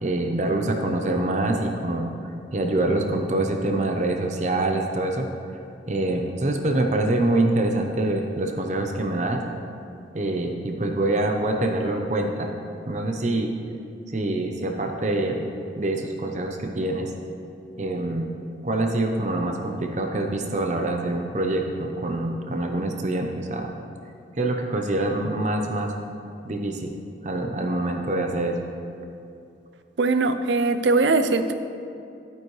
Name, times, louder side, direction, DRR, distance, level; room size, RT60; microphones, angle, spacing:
voice 1, 0.0-5.6 5.9-9.4 10.1-12.5 12.9-13.5 14.1-15.5 15.8-17.1 17.8-18.3 18.6-23.7 24.3-25.9 26.4-26.9 27.2-28.6, right 2 dB, 40° right, 3 dB, 0.7 m, -25 dB
voice 2, 30.0-31.5, right 3 dB, 85° right, 9 dB, 0.6 m, -21 dB
11.5 x 9.2 x 3.2 m, 2.5 s
head